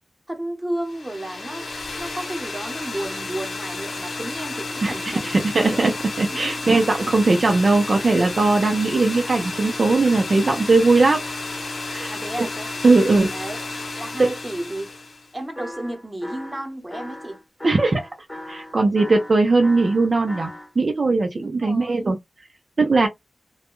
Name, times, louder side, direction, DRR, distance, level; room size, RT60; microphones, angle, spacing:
voice 1, 0.3-1.7 2.0-5.8 6.3-6.7 12.1-12.7 13.3-13.6 14.0-14.9 15.3-17.4 21.4-22.1 23.0-23.1, right 1 dB, 20° right, 0.9 m, -33 dB
sound 1, 0.8-15.3, left 3 dB, 70° left, 0.8 m, -32 dB
voice 2, 5.3-11.2 11.9-12.5 12.8-13.3 14.2-14.3 17.6-18.0 18.5-20.5 20.8-22.2 22.8-23.1, right 3 dB, 55° right, 0.5 m, -19 dB
sound 2, 15.6-20.7, left 1 dB, 10° left, 0.9 m, -38 dB
2.3 x 2.2 x 2.9 m
wide cardioid pair, 90°, 0 cm